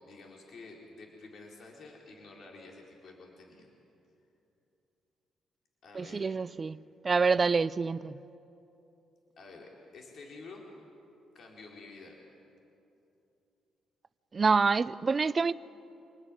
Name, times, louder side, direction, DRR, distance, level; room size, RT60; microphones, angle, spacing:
voice 1, 0.0-3.7 5.8-6.3 9.4-10.7 11.3-12.2, left 3 dB, 60° left, -1 dB, 4.2 m, -50 dB
voice 2, 5.9-6.8 7.0-8.2 14.3-15.5, right 4 dB, 35° right, 18 dB, 0.6 m, -27 dB
27.0 x 19.5 x 9.8 m, 2.9 s
cardioid pair, 90°, 0 cm